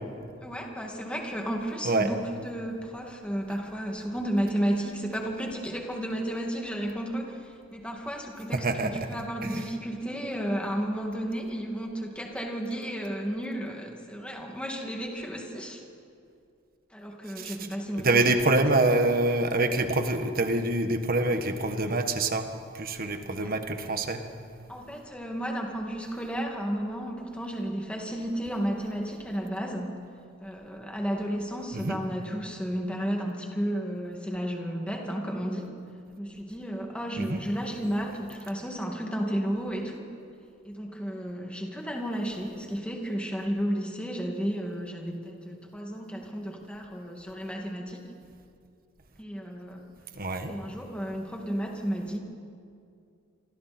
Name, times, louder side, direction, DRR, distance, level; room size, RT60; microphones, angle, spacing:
voice 1, 0.4-15.9 16.9-18.2 23.4-23.5 24.7-30.0 30.4-35.7 36.2-40.1 40.6-48.0 49.2-49.8 50.5-52.2, equal, 5° left, 1 dB, 2.4 m, -33 dB
voice 2, 8.5-9.1 9.4-9.6 17.4-17.6 18.0-22.5 22.7-24.2 31.7-32.0 37.2-37.4 50.1-50.5, right 2 dB, 45° right, 7 dB, 1.5 m, -26 dB
27.5 x 25.0 x 4.5 m, 2.4 s
head